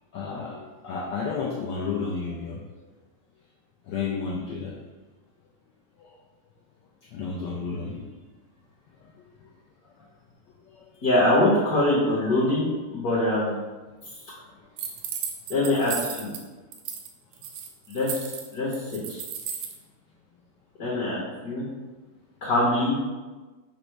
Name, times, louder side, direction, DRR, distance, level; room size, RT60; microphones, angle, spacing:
voice 1, 0.1-2.6 3.9-4.7 7.1-8.0, left 5 dB, 75° left, -3 dB, 1.0 m, -31 dB
voice 2, 11.0-13.6 15.5-16.3 17.9-18.3 18.5-18.7 19.1-19.2 20.8-21.7 22.4-23.0, left 1 dB, 55° left, -6 dB, 1.2 m, -23 dB
sound 1, 14.8-16.4 16.7-17.1 17.3-19.7, right 7 dB, 85° right, 1.5 m, -34 dB
5.3 x 2.0 x 4.5 m, 1.2 s
omnidirectional pair, 2.4 m